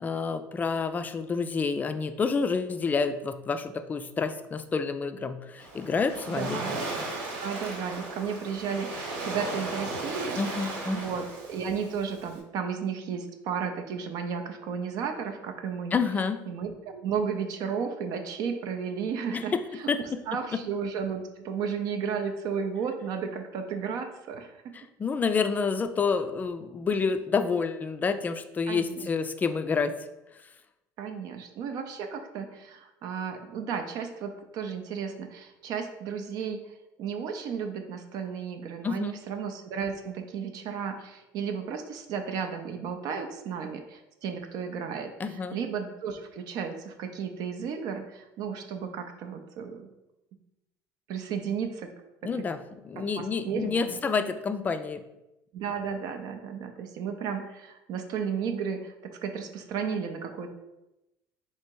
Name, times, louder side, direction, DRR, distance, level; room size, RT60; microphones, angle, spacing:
voice 1, 0.0-6.6 10.4-11.0 15.9-16.4 19.3-19.6 19.9-20.2 24.7-29.9 38.8-39.2 45.2-45.6 52.2-55.0, left 5 dB, 20° left, 9 dB, 0.3 m, -28 dB
Waves surf, 5.6-12.4, right 2 dB, 80° right, 1.2 m, -36 dB
voice 2, 6.3-6.8 7.4-16.0 16.5-19.9 20.3-24.7 28.7-29.1 31.0-49.9 51.1-51.9 52.2-52.3 53.0-54.0 55.5-60.5, right 6 dB, 60° right, 5 dB, 0.5 m, -34 dB
3.3 x 2.9 x 4.5 m, 0.94 s
cardioid pair, 115°, 7 cm